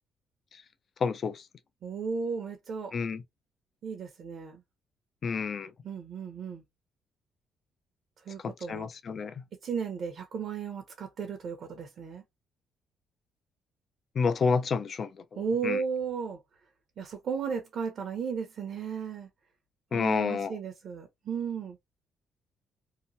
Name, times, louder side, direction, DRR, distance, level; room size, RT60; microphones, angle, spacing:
voice 1, 1.0-1.5 2.9-3.2 5.2-5.7 8.4-9.4 14.2-15.8 19.9-20.6, left 5 dB, 50° left, 0.5 m, -30 dB
voice 2, 1.8-2.9 3.8-4.6 5.8-6.6 8.3-8.9 9.6-12.2 15.4-16.4 17.0-19.3 19.9-21.8, right 6 dB, 60° right, 0.8 m, -34 dB
3.0 x 2.2 x 2.7 m
cardioid pair, 90°, 0 cm